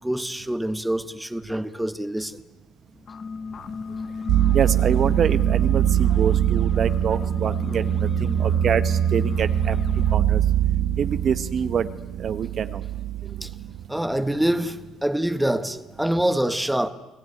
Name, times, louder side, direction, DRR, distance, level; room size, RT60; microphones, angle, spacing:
voice 1, 0.0-2.4 7.2-7.8 13.2-13.5 13.9-16.9, right 1 dB, 5° right, 1.2 m, -26 dB
sound 1, 2.9-10.2, left 4 dB, 30° left, 1.2 m, -35 dB
sound 2, 4.3-13.9, right 10 dB, 75° right, 1.1 m, -23 dB
voice 2, 4.5-9.8 10.1-10.4 11.0-11.9 12.2-12.8, right 7 dB, 40° right, 0.9 m, -26 dB
29.5 x 18.5 x 9.8 m
cardioid pair, 130°, 0 cm